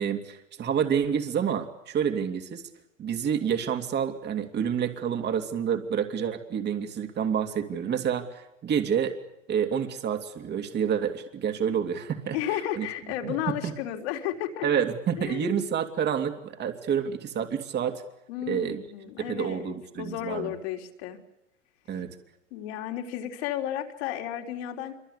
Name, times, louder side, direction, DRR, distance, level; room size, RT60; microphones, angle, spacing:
voice 1, 0.0-2.6 3.0-9.1 9.5-12.4 12.7-12.9 13.2-13.3 13.6-13.7 14.6-18.0 18.5-18.8 19.3-20.5 21.9-22.2, right 8 dB, 25° right, 6 dB, 2.8 m, -28 dB
voice 2, 12.3-14.8 15.2-15.6 18.3-21.2 22.5-24.9, left 11 dB, 55° left, 2 dB, 3.8 m, -33 dB
27.0 x 24.0 x 8.3 m, 0.90 s
hypercardioid pair, 110°, 38 cm